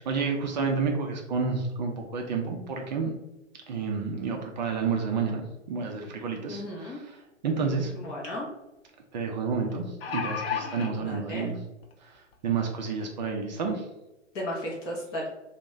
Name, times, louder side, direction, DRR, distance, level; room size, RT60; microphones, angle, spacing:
voice 1, 0.1-3.1 3.7-7.0 7.4-7.9 9.1-11.6 12.4-13.9, right 5 dB, 40° right, 2 dB, 0.4 m, -30 dB
voice 2, 6.5-7.0 7.9-8.5 10.9-11.5 14.3-15.3, left 1 dB, 20° left, -3 dB, 0.4 m, -35 dB
sound 1, 7.6-7.7 8.0-8.1 9.7-10.9 11.8-11.9 12.3-12.4, left 7 dB, 55° left, 0.7 m, -32 dB
2.9 x 2.1 x 3.6 m, 0.95 s
figure-of-eight pair, 115°, 37 cm